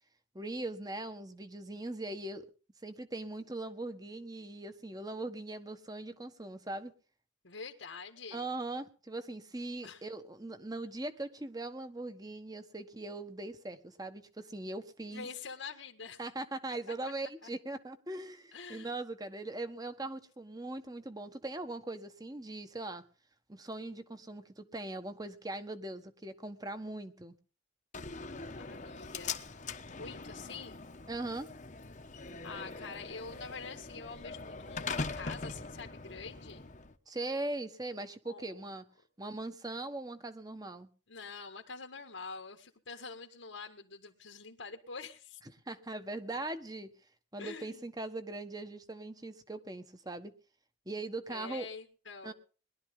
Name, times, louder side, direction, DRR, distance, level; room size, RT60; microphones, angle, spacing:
voice 1, 0.3-2.4 2.8-6.9 8.3-15.3 16.2-23.0 23.5-27.3 31.1-31.5 37.1-38.8 39.2-40.9 45.7-46.9 47.3-50.3 50.8-51.7 52.2-52.3, right 2 dB, 20° right, 10 dB, 1.3 m, -40 dB
voice 2, 7.4-8.4 9.8-10.0 15.1-16.2 16.9-17.0 18.5-18.9 28.6-29.4 29.8-30.9 32.4-36.7 38.2-38.5 41.1-45.4 47.4-47.9 51.3-52.3, left 4 dB, 80° left, 2 dB, 1.8 m, -46 dB
Slam, 27.9-36.9, left 4 dB, 40° left, 1.1 m, -42 dB
21.5 x 12.0 x 3.7 m, 0.36 s
head